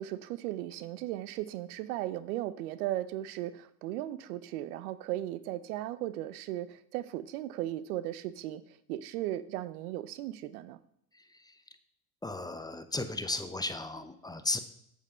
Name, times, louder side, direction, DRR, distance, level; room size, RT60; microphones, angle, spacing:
voice 1, 0.0-10.8, right 14 dB, 80° right, 15 dB, 0.9 m, -36 dB
voice 2, 12.2-14.6, left 2 dB, 10° left, 10 dB, 0.7 m, -35 dB
8.5 x 8.0 x 5.6 m, 0.72 s
supercardioid pair, 110°, 43 cm